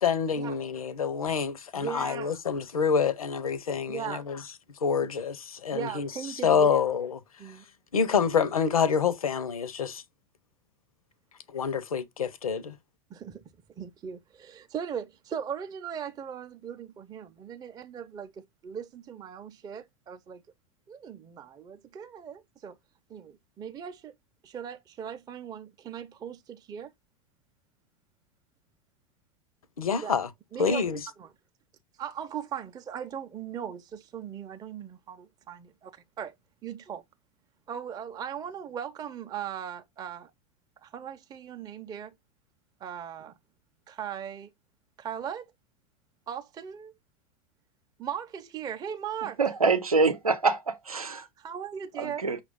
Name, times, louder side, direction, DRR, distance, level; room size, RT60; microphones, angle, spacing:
voice 1, 0.0-4.4 4.8-6.1 6.4-7.2 7.9-10.0 11.5-12.8 29.8-30.3 30.6-31.0, left 6 dB, 80° left, 0.7 m, -27 dB
voice 2, 1.7-2.4 3.9-4.2 5.7-6.8 7.4-7.6 13.1-13.4 13.8-20.4 20.9-22.8 23.1-24.1 24.4-26.9 30.0-30.1 30.5-30.8 31.2-31.3 32.0-36.3 36.6-37.0 37.7-40.3 40.8-42.1 42.8-43.3 43.9-44.5 45.0-45.5 46.3-46.9 48.0-49.4 51.4-52.2, right 8 dB, 20° right, 0.5 m, -38 dB
voice 3, 49.4-51.3 52.0-52.4, right 4 dB, 90° right, 0.6 m, -25 dB
6.0 x 2.4 x 3.5 m
figure-of-eight pair, 85°, 18 cm